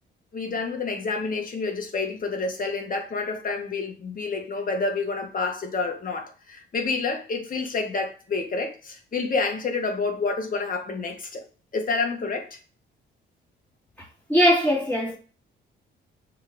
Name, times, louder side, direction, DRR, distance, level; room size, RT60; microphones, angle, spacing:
voice 1, 0.3-11.4 11.7-12.6, left 4 dB, 45° left, 1.7 m, -28 dB
voice 2, 14.3-15.2, equal, 10° left, 3.0 m, -20 dB
7.1 x 3.6 x 3.9 m
cardioid pair, 90°, 20 cm